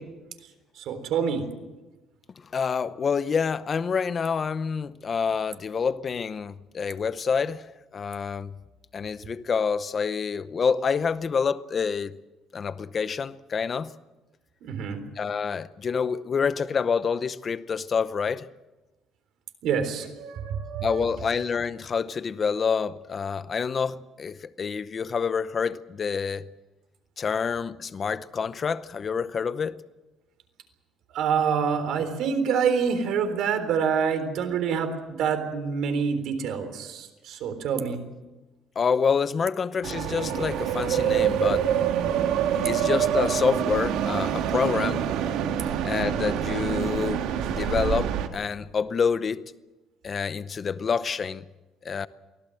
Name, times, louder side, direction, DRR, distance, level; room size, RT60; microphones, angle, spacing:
voice 1, 0.8-1.4 14.7-15.0 19.6-21.1 31.1-34.9 35.2-38.0, right 6 dB, 65° right, 3.7 m, -26 dB
voice 2, 2.5-7.7 7.9-8.5 8.9-12.2 12.5-13.9 15.2-18.5 20.8-26.5 27.2-29.8 38.8-41.7 42.6-45.0 45.8-47.2 47.5-49.5 50.0-51.5 51.8-52.1, left 6 dB, 30° left, 0.7 m, -27 dB
sound 1, 39.8-48.3, right 9 dB, 90° right, 1.8 m, -26 dB
24.0 x 17.5 x 7.8 m
cardioid pair, 165°, 0 cm